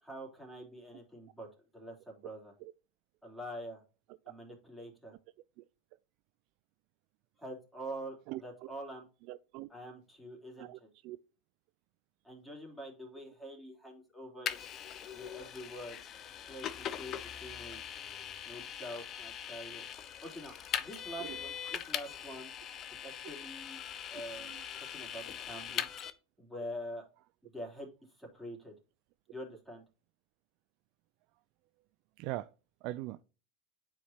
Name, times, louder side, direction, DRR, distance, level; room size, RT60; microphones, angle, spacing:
voice 1, 0.0-1.5 1.7-2.5 3.2-3.8 4.3-5.1 7.4-9.0 9.7-10.9 12.2-14.6 15.1-16.0 16.4-17.8 18.4-19.9 20.2-22.5 23.0-23.8 24.1-25.9 26.4-27.0 27.4-27.9 28.2-28.7 29.3-29.8, equal, ahead, 3.2 m, -45 dB
voice 2, 8.3-8.7 9.3-9.7 10.6-11.2 21.2-21.4 24.4-24.6 32.2-32.5 32.8-33.2, right 17 dB, 60° right, 0.3 m, -41 dB
Vehicle, 14.5-26.1, left 9 dB, 40° left, 0.8 m, -41 dB
9.8 x 4.8 x 2.9 m
hypercardioid pair, 90°, 0 cm